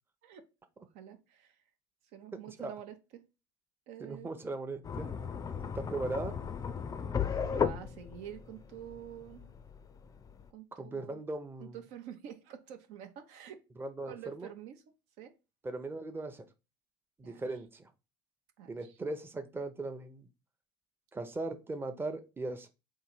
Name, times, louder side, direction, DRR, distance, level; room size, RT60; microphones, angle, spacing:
voice 1, 0.8-1.6 2.1-3.2 3.9-4.4 7.2-9.5 10.5-11.2 11.6-13.6 14.1-14.8 15.2-15.3 17.2-17.5 18.6-19.0, right 10 dB, 70° right, 6 dB, 0.7 m, -48 dB
voice 2, 4.0-5.1 5.7-6.4 10.8-11.8 13.8-14.5 15.6-16.4 17.2-17.9 18.7-20.3 21.1-22.7, right 2 dB, 15° right, 7 dB, 0.7 m, -38 dB
sound 1, 4.8-10.5, left 6 dB, 25° left, 0.5 m, -36 dB
3.7 x 2.7 x 4.4 m, 0.28 s
hypercardioid pair, 70°, 13 cm